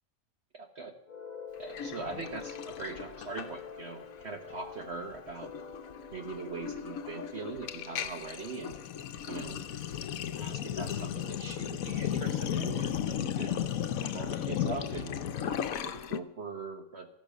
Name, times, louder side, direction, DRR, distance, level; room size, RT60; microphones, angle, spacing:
voice 1, 0.5-0.9 1.6-5.5 6.1-8.8 9.3-9.6 10.3-13.6 13.9-17.1, right 4 dB, 50° right, 6 dB, 1.4 m, -41 dB
sound 1, 1.1-8.6, left 6 dB, 35° left, 0.8 m, -47 dB
Sink (filling or washing), 1.7-3.9 4.2-4.5 4.8-16.2, left 9 dB, 75° left, 1.2 m, -35 dB
14.5 x 12.0 x 6.2 m, 0.82 s
omnidirectional pair, 1.5 m